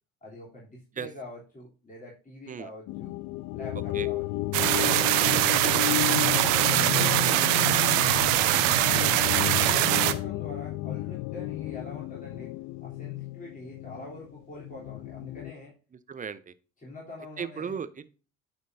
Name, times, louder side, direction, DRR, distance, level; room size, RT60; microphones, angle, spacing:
voice 1, 0.2-3.1 3.5-4.2 4.5-7.2 9.3-12.5 12.8-15.7 16.8-17.8, left 1 dB, 20° left, -5 dB, 3.3 m, -45 dB
sound 1, 2.9-15.5, left 19 dB, 50° left, 0.4 m, -33 dB
sound 2, 4.5-10.1, right 15 dB, 70° right, 0.8 m, -23 dB
voice 2, 7.9-8.3 16.1-16.5 17.4-18.1, right 6 dB, 20° right, 15 dB, 0.7 m, -36 dB
9.2 x 6.2 x 2.7 m, 0.35 s
hypercardioid pair, 60°, 40 cm